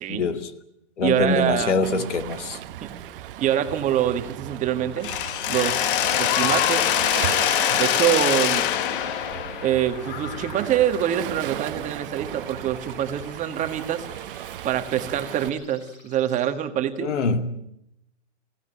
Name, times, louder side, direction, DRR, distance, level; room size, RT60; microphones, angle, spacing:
voice 1, 0.1-0.5 1.0-2.6 17.0-17.7, left 3 dB, 75° left, 2.3 m, -24 dB
voice 2, 1.0-1.9 2.8-2.9 3.4-5.1 5.5-6.9 7.7-8.6 9.6-14.0 14.6-17.1, right 10 dB, 20° right, 1.7 m, -25 dB
Waves surf, 1.8-15.5, right 12 dB, 50° right, 1.2 m, -36 dB
sound 1, 2.6-16.5, left 1 dB, 20° left, 6.9 m, -52 dB
Mechanisms, 5.0-10.9, left 11 dB, 45° left, 1.3 m, -24 dB
23.0 x 16.5 x 9.0 m
hypercardioid pair, 140°, 36 cm